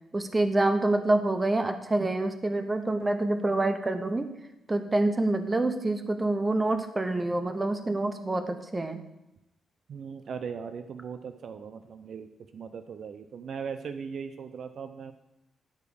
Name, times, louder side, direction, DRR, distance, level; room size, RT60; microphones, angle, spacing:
voice 1, 0.1-4.3 4.7-9.0, right 2 dB, 20° right, 7 dB, 0.9 m, -27 dB
voice 2, 9.9-15.1, right 6 dB, 55° right, 9 dB, 0.6 m, -39 dB
10.5 x 4.7 x 7.0 m, 0.92 s
cardioid pair, 125°, 0 cm